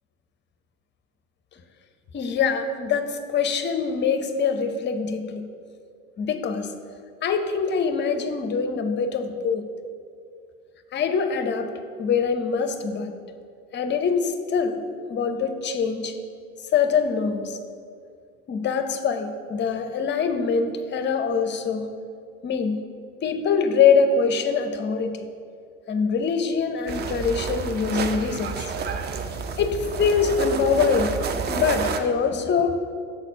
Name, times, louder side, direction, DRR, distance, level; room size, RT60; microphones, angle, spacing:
voice 1, 2.1-5.5 6.2-6.7 7.2-9.7 10.9-11.7 12.0-13.1 13.7-14.8 15.1-16.2 16.7-17.6 18.5-21.9 22.4-22.8 23.2-25.2 25.9-28.7 29.6-31.2 31.5-32.8, left 6 dB, 25° left, 7 dB, 0.6 m, -24 dB
sound 1, 26.9-32.0, right 5 dB, 25° right, 0.5 m, -29 dB
7.1 x 4.1 x 5.6 m, 2.3 s
hypercardioid pair, 70°, 42 cm